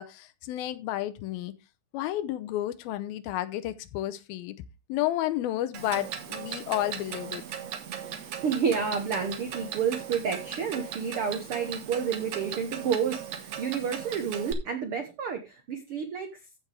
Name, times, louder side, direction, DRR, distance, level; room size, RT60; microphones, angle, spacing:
voice 1, 0.0-1.5 1.9-4.6 4.9-7.4, left 14 dB, 80° left, 2.6 m, -31 dB
Clock, 5.7-14.5, right 9 dB, 60° right, 2.0 m, -38 dB
voice 2, 8.4-16.3, right 6 dB, 85° right, 1.2 m, -30 dB
15.0 x 6.1 x 3.4 m
omnidirectional pair, 4.3 m